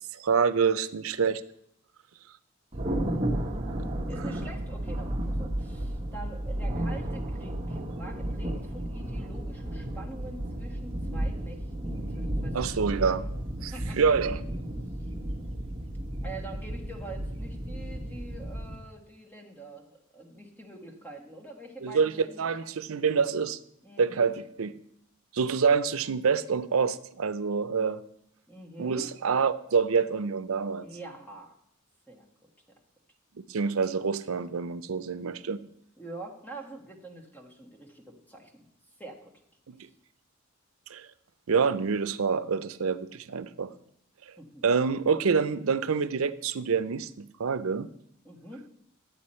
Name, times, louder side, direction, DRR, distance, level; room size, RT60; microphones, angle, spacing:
voice 1, 0.1-1.4 12.5-13.3 13.6-14.4 21.8-23.6 24.0-24.7 25.3-28.0 28.8-30.9 33.4-35.6 40.9-41.1 41.5-43.7 44.6-47.9, right 5 dB, 80° right, 13 dB, 0.5 m, -27 dB
Thunder, 2.7-18.7, right 1 dB, 30° right, 1.2 m, -33 dB
voice 2, 4.1-12.6 12.8-13.0 13.7-14.1 16.2-22.6 23.8-24.2 28.5-29.1 30.8-31.5 32.1-32.3 36.0-38.5 39.0-39.3 44.4-44.6 48.2-48.6, right 2 dB, 10° left, 1 dB, 1.4 m, -45 dB
11.5 x 8.3 x 4.3 m, 0.73 s
head